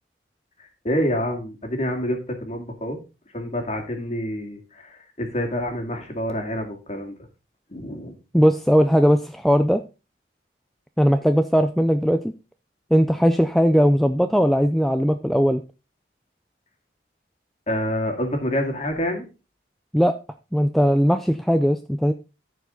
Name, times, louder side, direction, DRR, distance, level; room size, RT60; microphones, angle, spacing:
voice 1, 0.6-3.0 3.3-7.1 7.7-8.2 17.7-19.2, equal, 35° left, 3 dB, 2.1 m, -27 dB
voice 2, 8.3-9.8 11.0-12.3 12.9-15.6 19.9-20.1 20.5-22.1, equal, ahead, 7 dB, 0.3 m, -19 dB
14.0 x 4.7 x 3.8 m, 0.29 s
head